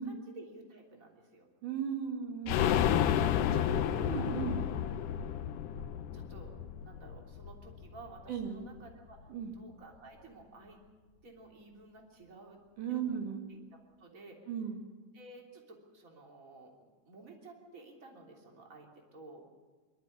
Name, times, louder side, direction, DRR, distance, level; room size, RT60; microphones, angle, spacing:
voice 1, 0.0-1.5 3.6-4.3 6.1-6.5 6.8-10.8 11.2-12.6 12.9-13.2 13.5-13.6 14.0-14.5 15.1-19.4, right 2 dB, 25° right, 1 dB, 3.4 m, -53 dB
voice 2, 1.6-2.9 3.5-3.6 4.0-4.6 8.3-8.6 9.3-9.5 12.8-13.4 14.5-14.8, right 7 dB, 80° right, 3 dB, 3.8 m, -36 dB
sound 1, 2.5-8.1 8.4-8.5 8.8-8.9, left 9 dB, 90° left, 2.3 m, -31 dB
25.0 x 13.0 x 9.9 m, 1.4 s
omnidirectional pair, 3.5 m